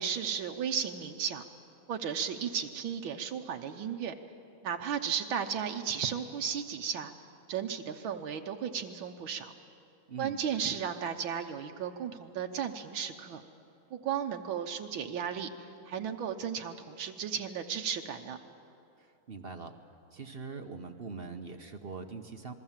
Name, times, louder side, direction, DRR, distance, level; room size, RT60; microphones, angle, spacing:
voice 1, 0.0-1.4 1.9-4.1 4.6-7.1 7.5-9.5 10.2-13.4 13.9-15.5 15.9-18.4, right 7 dB, 80° right, 4 dB, 1.7 m, -34 dB
voice 2, 19.0-19.7 20.1-22.5, right 4 dB, 40° right, 6 dB, 0.9 m, -42 dB
27.5 x 21.5 x 7.4 m, 2.7 s
omnidirectional pair, 2.2 m